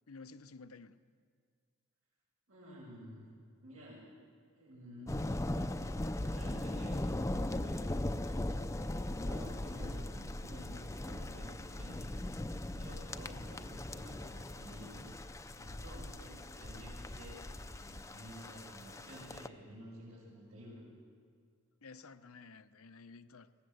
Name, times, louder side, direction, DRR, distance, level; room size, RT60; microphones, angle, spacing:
voice 1, 0.1-0.9 16.2-16.4 21.8-23.6, left 4 dB, 80° left, 0.8 m, -53 dB
voice 2, 2.5-3.3 3.6-4.1 4.5-5.3 6.2-7.1 7.4-7.9 8.9-12.2 12.6-15.1 15.5-20.8, equal, 85° right, 6.8 m, -52 dB
sound 1, 5.1-19.5, left 1 dB, 15° left, 0.5 m, -39 dB
23.0 x 18.5 x 7.8 m
head